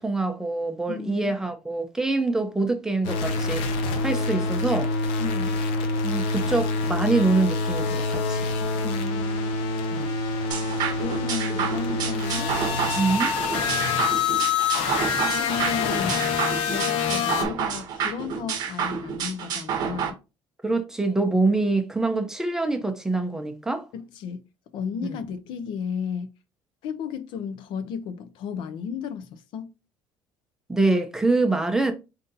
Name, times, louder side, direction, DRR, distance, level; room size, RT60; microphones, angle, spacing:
voice 1, 0.0-4.9 6.0-8.5 9.9-10.1 13.0-13.3 20.6-23.9 25.0-25.2 30.7-31.9, right 3 dB, 5° right, 0.6 m, -25 dB
voice 2, 0.9-1.4 5.2-5.6 8.8-9.6 11.0-12.6 13.9-14.0 15.2-16.3 16.7-20.2 23.9-24.4 24.7-26.3 26.8-29.7, left 7 dB, 60° left, 0.6 m, -34 dB
sound 1, 3.0-17.4, left 4 dB, 80° left, 0.9 m, -26 dB
sound 2, 10.5-20.1, right 7 dB, 45° right, 0.8 m, -29 dB
3.9 x 2.7 x 3.9 m
cardioid pair, 160°, 9 cm